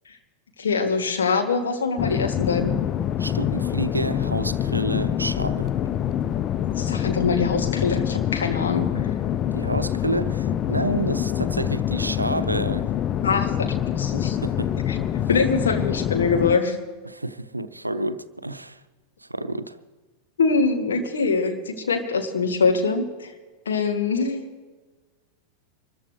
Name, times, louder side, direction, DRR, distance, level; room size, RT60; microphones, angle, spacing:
voice 1, 0.6-2.8 6.8-8.9 13.2-14.4 14.9-15.0 15.3-16.8 20.4-23.3 23.7-24.4, left 4 dB, 65° left, 1.8 m, -23 dB
sound 1, 2.0-16.6, left 10 dB, 30° left, 0.4 m, -25 dB
voice 2, 3.2-5.7 9.5-12.9 14.3-15.1 17.1-18.8 19.2-19.8, right 1 dB, 85° right, 0.6 m, -29 dB
24.5 x 14.0 x 3.3 m
figure-of-eight pair, 90°, 0 cm